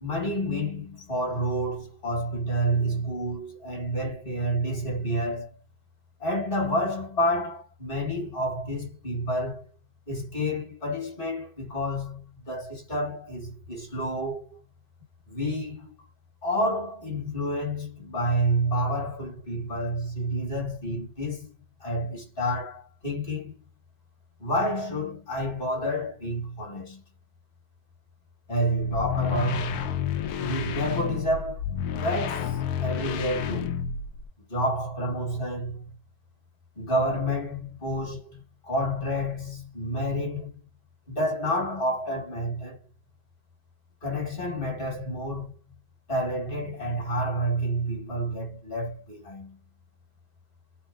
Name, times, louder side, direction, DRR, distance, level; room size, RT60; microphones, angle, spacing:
voice 1, 0.0-5.5 6.2-9.7 10.1-14.6 15.3-16.0 16.4-21.5 21.8-23.6 24.4-27.0 28.5-29.9 30.4-31.7 31.9-33.8 34.5-35.9 36.8-40.6 41.1-42.8 44.0-45.6 46.1-49.6, equal, 35° left, 1.8 m, -29 dB
sound 1, 28.9-34.3, left 8 dB, 75° left, 1.2 m, -30 dB
4.1 x 2.2 x 3.7 m
omnidirectional pair, 1.7 m